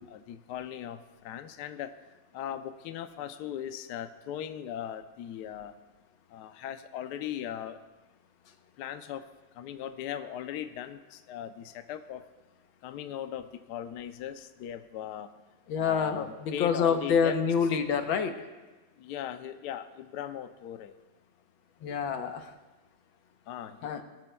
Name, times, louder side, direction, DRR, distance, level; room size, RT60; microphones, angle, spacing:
voice 1, 0.0-1.9 2.3-5.7 6.3-7.8 8.8-9.2 9.6-12.2 12.8-15.3 15.8-17.4 19.0-20.9 23.5-23.9, left 10 dB, 70° left, 9 dB, 1.1 m, -39 dB
voice 2, 15.7-18.3 21.8-22.5 23.8-24.0, left 6 dB, 85° left, 6 dB, 1.7 m, -27 dB
22.5 x 13.0 x 2.3 m, 1.1 s
omnidirectional pair, 2.1 m